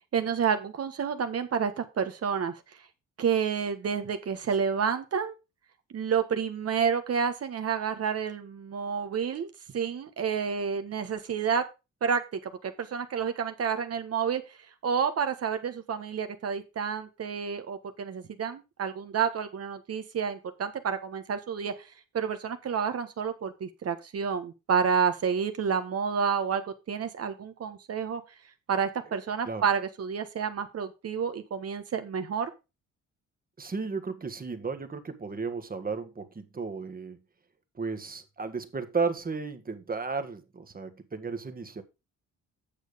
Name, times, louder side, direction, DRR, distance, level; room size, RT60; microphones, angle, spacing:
voice 1, 0.1-2.5 3.2-5.3 5.9-11.6 12.0-14.4 14.8-21.9 22.1-28.2 28.7-32.5, right 6 dB, 55° right, 1.4 m, -29 dB
voice 2, 33.6-37.2 37.8-41.8, right 4 dB, 30° right, 1.7 m, -34 dB
9.1 x 6.5 x 5.1 m
cardioid pair, 90°, 30 cm